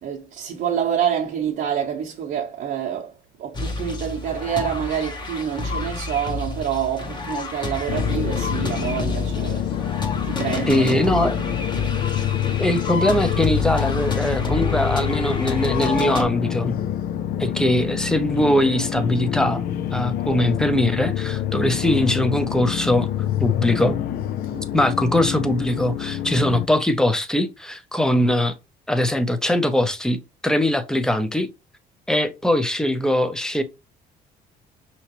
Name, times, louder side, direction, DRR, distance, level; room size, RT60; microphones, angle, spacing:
voice 1, 0.0-3.1 3.4-9.6 10.2-11.5 24.5-24.7, right 9 dB, 55° right, 0.8 m, -27 dB
sound 1, 3.5-16.2, left 3 dB, 25° left, 1.1 m, -29 dB
sound 2, 7.9-26.7, left 11 dB, 60° left, 0.5 m, -26 dB
voice 2, 10.7-11.4 12.6-16.8 17.4-23.1 23.4-24.0 24.7-28.5 28.9-31.5 32.1-33.6, left 1 dB, 5° left, 0.6 m, -21 dB
5.6 x 2.9 x 2.9 m
cardioid pair, 110°, 17 cm